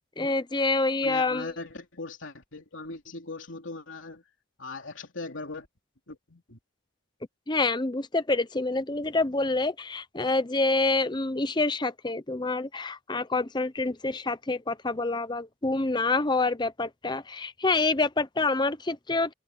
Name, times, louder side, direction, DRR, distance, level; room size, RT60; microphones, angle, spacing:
voice 1, 0.2-1.5 7.5-19.3, left 3 dB, 20° left, 0.7 m, -27 dB
voice 2, 1.0-4.2 4.6-5.7 6.1-6.6, left 3 dB, 65° left, 3.2 m, -39 dB
head